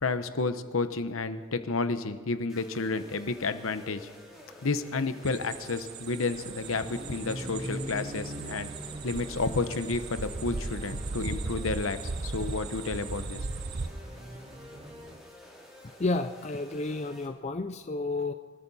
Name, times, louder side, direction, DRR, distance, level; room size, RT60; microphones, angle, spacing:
voice 1, 0.0-4.1 4.6-8.7 9.0-13.5, left 3 dB, 70° left, 11 dB, 0.9 m, -31 dB
sound 1, 2.5-17.3, left 1 dB, ahead, 3.0 m, -50 dB
sound 2, 5.2-13.9, right 3 dB, 45° right, 0.6 m, -38 dB
sound 3, 6.2-15.2, right 1 dB, 25° right, 1.0 m, -44 dB
voice 2, 16.0-18.3, left 2 dB, 30° left, 8 dB, 0.4 m, -31 dB
24.0 x 14.0 x 4.2 m, 1.5 s
head